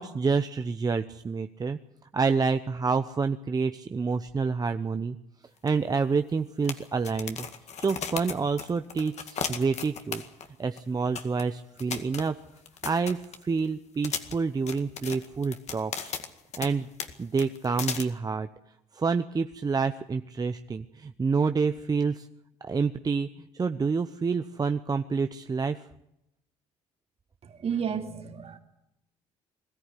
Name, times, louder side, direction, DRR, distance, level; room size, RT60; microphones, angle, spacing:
voice 1, 0.0-1.8 2.1-5.2 5.6-7.5 7.8-10.2 10.6-12.3 12.8-16.1 16.6-16.9 17.2-18.5 18.9-22.3 22.6-25.8, right 5 dB, 30° right, 8 dB, 0.9 m, -28 dB
sound 1, 5.7-5.8 6.0-6.1 6.6-10.5 10.8-10.9 11.1-11.4 11.8-13.6 14.0-16.7 17.0-17.1 17.4-18.0, left 7 dB, 55° left, 2.1 m, -35 dB
voice 2, 27.4-28.6, right 7 dB, 45° right, 5 dB, 2.7 m, -32 dB
21.5 x 14.0 x 9.9 m, 0.85 s
supercardioid pair, 75°, 14 cm